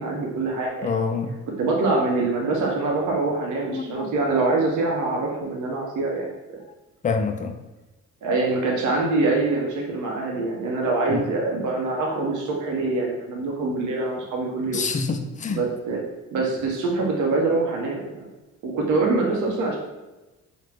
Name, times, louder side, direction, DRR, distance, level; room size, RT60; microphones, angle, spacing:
voice 1, 0.0-0.9 1.6-6.3 8.2-14.9 15.5-16.0 16.3-18.0 18.6-19.8, right 3 dB, 75° right, -1 dB, 0.8 m, -24 dB
voice 2, 0.8-1.4 3.7-4.2 7.0-7.6 11.1-11.2 14.7-15.7, left 5 dB, 25° left, 6 dB, 0.4 m, -26 dB
5.0 x 2.1 x 3.3 m, 1.1 s
cardioid pair, 90°, 30 cm